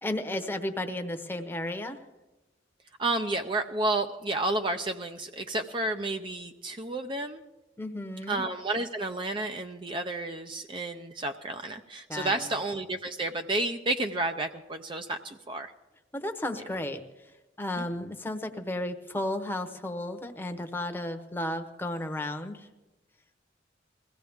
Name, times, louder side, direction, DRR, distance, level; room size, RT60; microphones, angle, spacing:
voice 1, 0.0-2.0 7.8-8.4 12.1-12.5 16.1-17.0 17.6-22.7, left 1 dB, 10° left, 5 dB, 0.9 m, -33 dB
voice 2, 3.0-7.4 8.3-15.7 17.8-17.9, right 2 dB, 25° right, 6 dB, 0.5 m, -31 dB
21.5 x 15.5 x 3.5 m, 1.0 s
head